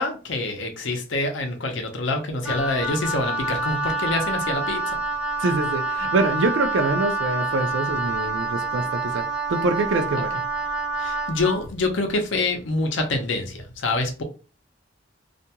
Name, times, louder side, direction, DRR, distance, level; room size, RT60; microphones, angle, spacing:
voice 1, 0.0-4.8 11.0-14.2, left 2 dB, 80° left, 0.7 m, -26 dB
Wind instrument woodwind instrument, 2.4-11.6, right 3 dB, 5° right, 0.4 m, -27 dB
voice 2, 5.4-9.2 9.5-10.3, right 3 dB, 80° right, 0.4 m, -24 dB
2.4 x 2.2 x 2.8 m
head